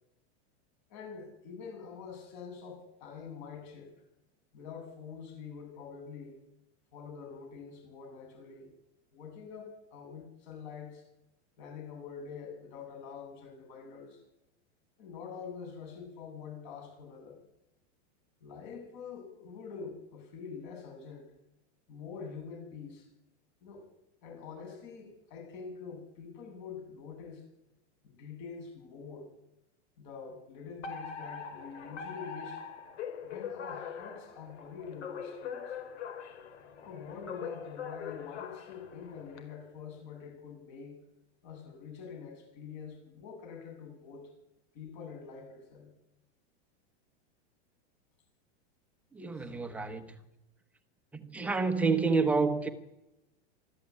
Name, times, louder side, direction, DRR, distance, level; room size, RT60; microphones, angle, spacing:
voice 1, 0.9-3.9 4.5-6.4 6.9-8.7 9.1-11.0 11.6-14.2 15.0-17.4 18.4-21.3 21.9-23.1 23.6-23.9 24.2-27.4 28.0-29.3 30.0-32.6 33.2-35.8 36.8-41.0 41.4-44.2 44.7-45.9 49.3-49.5, left 6 dB, 45° left, 7.8 m, -45 dB
Alarm, 30.8-39.4, left 7 dB, 85° left, 4.6 m, -42 dB
voice 2, 49.1-50.2 51.1-52.7, right 4 dB, 5° right, 1.0 m, -29 dB
25.0 x 14.0 x 8.6 m
supercardioid pair, 175°, 34 cm